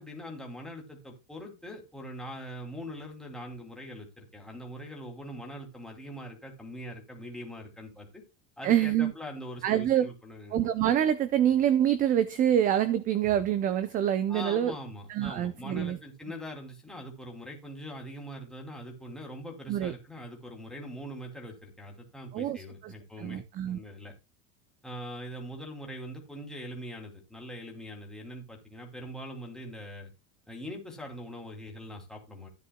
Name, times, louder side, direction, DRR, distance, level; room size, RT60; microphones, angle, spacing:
voice 1, 0.0-8.2 8.6-10.7 14.3-24.1 24.8-30.1 30.5-32.5, equal, ahead, 2.8 m, -42 dB
voice 2, 8.6-9.1 9.6-10.1 10.5-14.7 15.1-16.0 19.7-19.9 22.3-22.9 23.2-23.8, right 10 dB, 25° right, 0.5 m, -26 dB
14.5 x 9.7 x 2.2 m
supercardioid pair, 165°, 34 cm